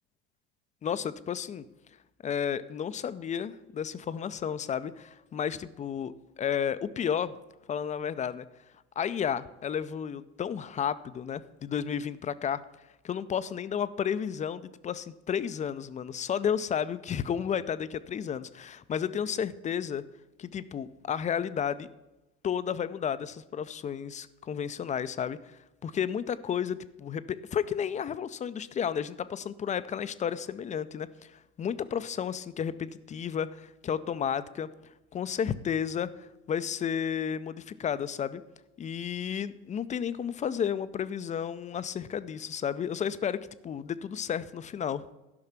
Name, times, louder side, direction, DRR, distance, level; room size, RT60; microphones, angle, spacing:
voice 1, 0.8-1.6 2.2-7.3 7.7-8.5 9.0-12.6 13.0-20.0 20.4-21.9 22.4-25.6 25.8-31.1 31.6-34.7 35.1-38.4 38.8-45.0, left 8 dB, 20° left, 14 dB, 0.4 m, -32 dB
12.0 x 5.6 x 5.9 m, 1.0 s
hypercardioid pair, 80°, 37 cm